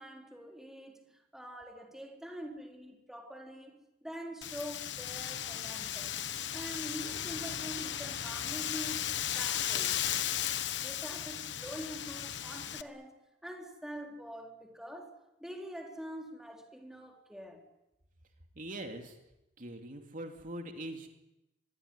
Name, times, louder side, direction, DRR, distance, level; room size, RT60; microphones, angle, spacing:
voice 1, 0.0-6.2 6.5-9.9 10.8-13.1 13.4-15.1 15.4-17.6, equal, 5° right, 4.3 m, -45 dB
Wind, 4.4-12.8, left 10 dB, 75° left, 1.2 m, -36 dB
voice 2, 18.5-19.2 19.6-21.1, right 1 dB, 50° right, 2.9 m, -42 dB
25.5 x 22.0 x 9.8 m
head